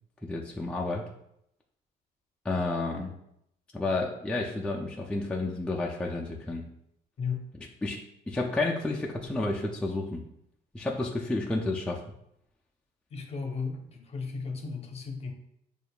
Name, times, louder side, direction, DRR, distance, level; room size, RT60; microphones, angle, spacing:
voice 1, 0.2-1.1 2.4-3.1 3.7-6.7 7.8-10.2 10.7-12.0, left 2 dB, 5° left, -2 dB, 0.4 m, -31 dB
voice 2, 7.2-7.5 13.1-15.3, left 5 dB, 40° left, 4 dB, 0.7 m, -35 dB
6.5 x 2.4 x 2.2 m, 0.77 s
cardioid pair, 110°, 17 cm